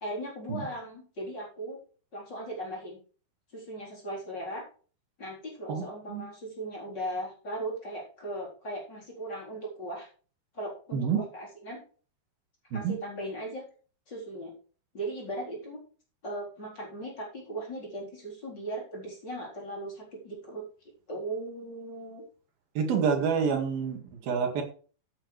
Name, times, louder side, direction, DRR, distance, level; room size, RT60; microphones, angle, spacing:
voice 1, 0.0-1.8 2.1-3.0 3.5-4.6 5.2-10.1 10.5-11.8 12.7-13.6 14.1-14.5 14.9-15.8 16.2-20.6 21.1-22.2, right 1 dB, 25° left, -3 dB, 4.4 m, -38 dB
voice 2, 5.7-6.2 10.9-11.2 12.7-13.0 22.8-24.6, right 6 dB, 70° right, 3 dB, 3.9 m, -28 dB
15.0 x 8.7 x 3.3 m, 0.39 s
omnidirectional pair, 4.6 m